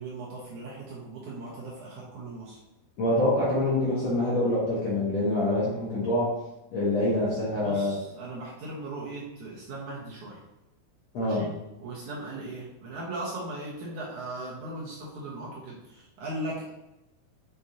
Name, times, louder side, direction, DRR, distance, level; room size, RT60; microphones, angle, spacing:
voice 1, 0.0-2.6 7.0-7.1 7.6-10.4 11.2-11.5 11.8-16.7, right 2 dB, 65° right, -5 dB, 2.2 m, -38 dB
voice 2, 3.0-6.4 6.7-8.0 11.1-11.5, left 1 dB, 60° left, -7 dB, 1.9 m, -25 dB
7.7 x 5.4 x 2.9 m, 0.96 s
omnidirectional pair, 4.6 m